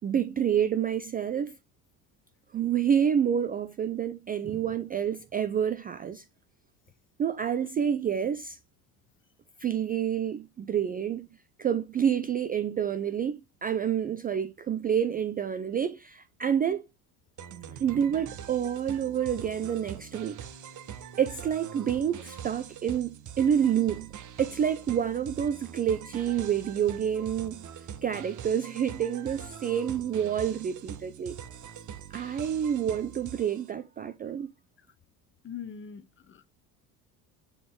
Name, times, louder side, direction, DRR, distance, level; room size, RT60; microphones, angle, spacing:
voice 1, 0.0-1.5 2.5-6.2 7.2-8.6 9.6-11.3 11.6-16.9 17.8-20.5 21.2-24.1 24.4-27.7 28.0-31.4 32.1-34.5, right 8 dB, 20° right, 0.4 m, -28 dB
sound 1, 17.4-33.7, right 8 dB, 40° right, 1.0 m, -43 dB
voice 2, 35.4-36.5, left 8 dB, 25° left, 0.8 m, -42 dB
7.1 x 3.8 x 3.6 m
hypercardioid pair, 65°, 48 cm